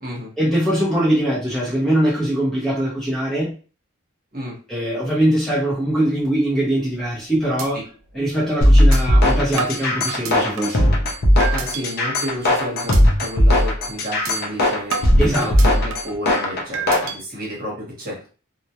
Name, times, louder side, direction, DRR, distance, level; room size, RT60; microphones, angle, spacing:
voice 1, 0.4-3.5 4.7-7.8 8.1-10.9 15.2-15.7, right 1 dB, ahead, -8 dB, 0.7 m, -21 dB
sound 1, 6.9-7.2 7.6-7.7 8.1-8.2 8.9-9.0 9.6-10.8 11.4-11.8 12.3-12.5 12.9-13.0 13.4-13.6 14.2-14.3 14.9-16.2 16.7-17.2, right 6 dB, 70° right, 0.4 m, -30 dB
sound 2, 8.6-17.1, left 1 dB, 45° left, 0.5 m, -17 dB
voice 2, 11.5-18.3, equal, 40° right, -4 dB, 1.0 m, -31 dB
2.2 x 2.1 x 2.8 m, 0.37 s
head